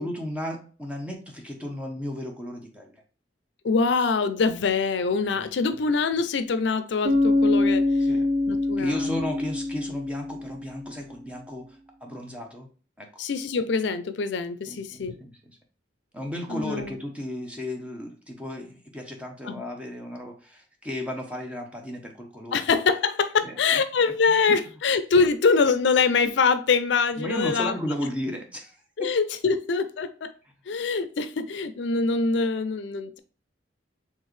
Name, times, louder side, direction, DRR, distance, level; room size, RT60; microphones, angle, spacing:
voice 1, 0.0-3.0 5.3-5.4 8.0-8.3 8.8-11.6 12.0-12.7 13.0-13.1 14.6-15.6 16.1-22.6 23.4-23.6 24.3-24.5 27.2-28.8, equal, 5° right, 0.8 m, -34 dB
voice 2, 3.6-7.8 8.5-9.3 13.2-15.2 16.5-17.0 19.4-19.6 22.5-27.8 29.0-30.3 30.7-33.2, left 4 dB, 70° left, 0.4 m, -24 dB
Bass guitar, 7.0-10.9, left 2 dB, 55° right, 0.7 m, -24 dB
4.5 x 3.4 x 3.2 m
head